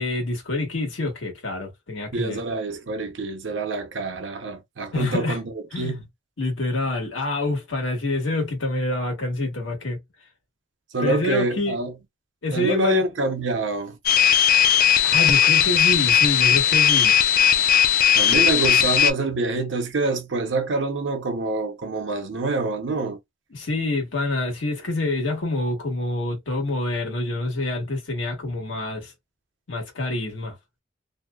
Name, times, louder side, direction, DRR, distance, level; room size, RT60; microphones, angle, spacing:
voice 1, 0.0-2.4 4.9-5.4 5.7-6.0 6.4-10.0 11.0-11.8 12.4-13.1 15.0-17.2 23.5-29.1 29.7-30.6, left 2 dB, 85° left, 1.2 m, -26 dB
voice 2, 2.1-6.0 10.9-11.9 12.5-14.0 18.1-23.2, right 2 dB, 70° right, 0.6 m, -26 dB
sound 1, 14.1-19.1, left 9 dB, 50° left, 0.3 m, -17 dB
2.7 x 2.0 x 2.2 m
head